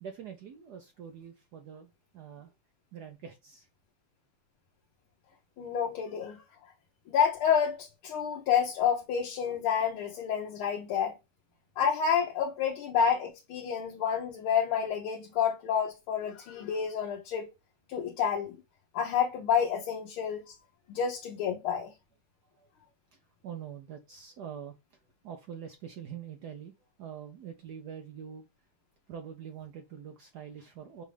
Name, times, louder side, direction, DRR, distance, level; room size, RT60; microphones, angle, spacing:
voice 1, 0.0-2.5 2.9-3.7 22.6-22.7 23.4-24.8 25.2-26.7 27.0-28.5 29.1-31.0, right 8 dB, 70° right, 1.0 m, -44 dB
voice 2, 5.6-6.7 7.1-11.2 11.8-17.5 17.9-18.6 18.9-20.4 20.9-21.9, left 7 dB, 75° left, 1.6 m, -29 dB
5.4 x 2.4 x 3.2 m
omnidirectional pair, 2.4 m